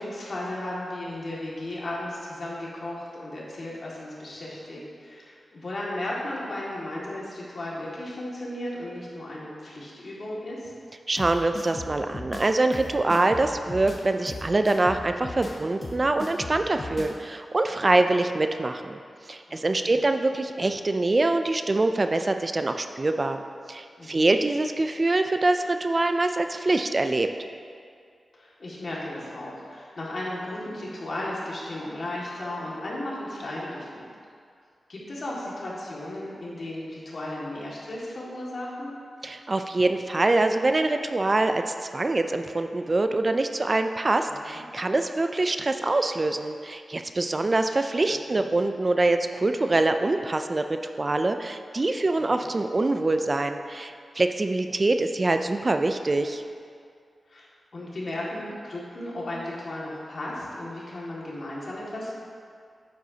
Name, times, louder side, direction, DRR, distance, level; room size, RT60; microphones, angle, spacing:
voice 1, 0.0-10.7 19.5-20.0 24.0-24.3 28.3-34.1 34.9-38.9 44.5-44.6 48.3-48.6 52.2-52.3 57.3-62.1, left 1 dB, 55° left, -5 dB, 1.9 m, -35 dB
voice 2, 11.1-19.0 19.3-23.4 23.7-27.3 39.2-56.4, right 2 dB, 35° right, 7 dB, 0.3 m, -24 dB
sound 1, 11.2-17.2, left 2 dB, 40° left, 0.8 m, -38 dB
9.1 x 7.5 x 2.8 m, 2.2 s
wide cardioid pair, 75°, 0 cm